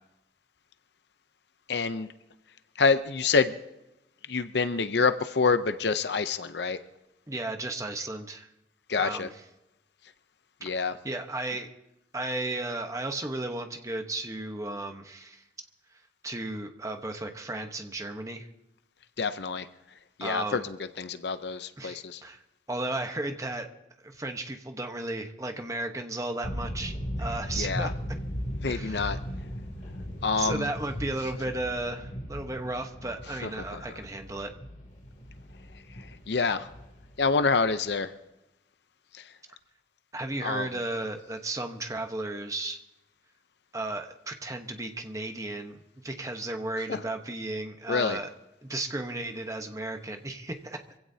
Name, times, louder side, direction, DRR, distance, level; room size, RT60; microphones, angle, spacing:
voice 1, 1.7-2.1 2.8-3.6 4.3-6.8 8.9-9.3 10.6-10.9 19.2-19.7 20.2-22.2 27.6-27.9 28.6-29.2 30.2-30.7 33.7-33.8 36.3-36.7 37.2-38.1 40.4-40.7 46.9-47.0 47.9-48.2, left 4 dB, 75° left, 11 dB, 0.7 m, -27 dB
voice 2, 7.3-8.5 9.0-9.4 10.7-11.7 12.1-15.4 16.2-18.5 20.2-20.7 21.8-22.4 22.7-23.7 24.0-27.9 28.7-29.2 30.4-34.5 40.1-42.8 43.7-48.3 48.6-50.8, right 2 dB, 20° right, 5 dB, 1.1 m, -34 dB
sound 1, 26.4-37.9, equal, 45° left, 2.9 m, -37 dB
25.0 x 16.0 x 2.8 m, 0.94 s
head